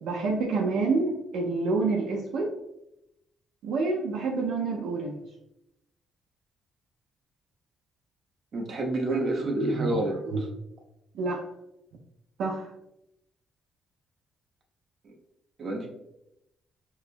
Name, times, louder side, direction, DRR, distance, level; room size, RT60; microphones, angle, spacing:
voice 1, 0.0-2.5 3.6-5.2 9.1-10.5 11.1-11.4 12.4-12.7, right 3 dB, 85° right, -1 dB, 0.5 m, -28 dB
voice 2, 8.5-10.1 15.0-15.1 15.6-15.9, right 2 dB, 55° right, 1 dB, 0.8 m, -29 dB
4.7 x 2.3 x 2.5 m, 0.84 s
cardioid pair, 90°, 0 cm